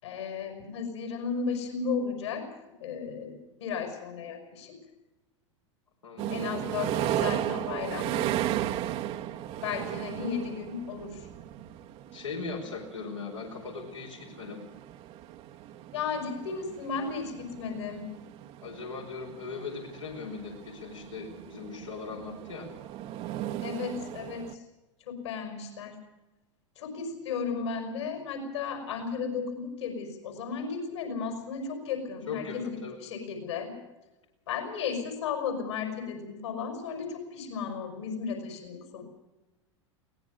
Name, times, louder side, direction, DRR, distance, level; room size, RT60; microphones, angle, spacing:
voice 1, 0.0-2.4 2.8-3.3 3.6-4.7 6.3-8.1 9.6-11.3 15.9-18.1 23.6-24.6 25.1-26.0 26.8-33.7 34.5-39.0, left 5 dB, 65° left, 5 dB, 5.4 m, -34 dB
voice 2, 6.0-6.5 12.1-14.6 18.6-22.7 32.3-33.0, left 4 dB, 80° left, -3 dB, 4.8 m, -39 dB
sound 1, 6.2-24.5, right 12 dB, 40° right, 1.2 m, -36 dB
22.0 x 18.5 x 6.5 m, 1.0 s
figure-of-eight pair, 85°, 16 cm